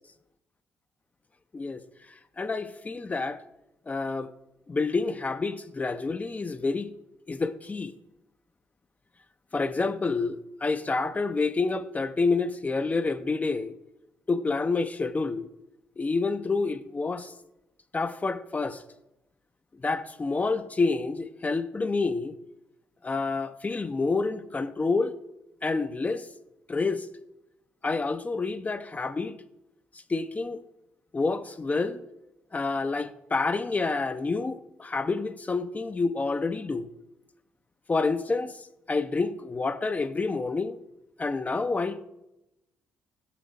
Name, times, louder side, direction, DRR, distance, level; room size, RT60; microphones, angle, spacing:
voice 1, 2.4-3.4 3.9-4.3 4.7-6.9 7.3-7.9 9.5-13.8 14.3-15.5 16.0-17.3 17.9-18.8 19.8-22.4 23.0-25.1 25.6-26.3 26.7-27.1 27.8-29.4 30.1-30.6 31.1-32.0 32.5-36.9 37.9-40.8 41.2-42.0, left 3 dB, 30° left, 0.5 m, -28 dB
6.4 x 5.8 x 4.7 m
hypercardioid pair, 50°, 5 cm